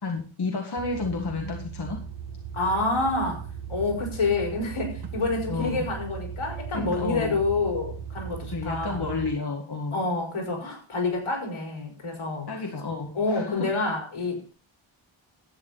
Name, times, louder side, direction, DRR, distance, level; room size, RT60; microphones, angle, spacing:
voice 1, 0.0-2.0 5.5-5.9 6.7-7.4 8.5-10.0 12.5-13.8, left 4 dB, 50° left, 2 dB, 1.8 m, -31 dB
sound 1, 0.8-9.3, right 7 dB, 50° right, 1.6 m, -38 dB
voice 2, 2.5-3.4 3.7-9.1 9.9-12.5 13.1-14.5, left 3 dB, 80° left, 1 dB, 4.8 m, -28 dB
12.0 x 9.0 x 4.0 m, 0.38 s
wide cardioid pair, 130°, 49 cm